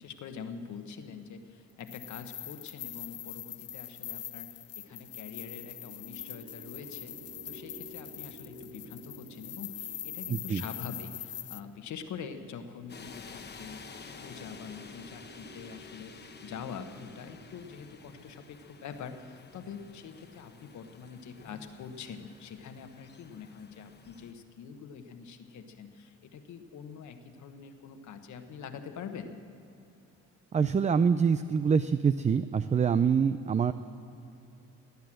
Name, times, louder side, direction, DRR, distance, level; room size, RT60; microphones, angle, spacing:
voice 1, 0.0-7.1 7.4-29.3, left 6 dB, 70° left, 7 dB, 1.3 m, -44 dB
sound 1, 1.8-11.6, left 11 dB, 55° left, 0.6 m, -43 dB
sound 2, 4.6-22.1, right 2 dB, 85° right, 1.6 m, -54 dB
voice 2, 10.3-10.6 30.5-33.7, right 6 dB, 25° right, 12 dB, 0.4 m, -25 dB
sound 3, 12.9-24.3, left 5 dB, 35° left, 1.1 m, -51 dB
18.5 x 9.4 x 7.6 m, 2.8 s
cardioid pair, 90°, 30 cm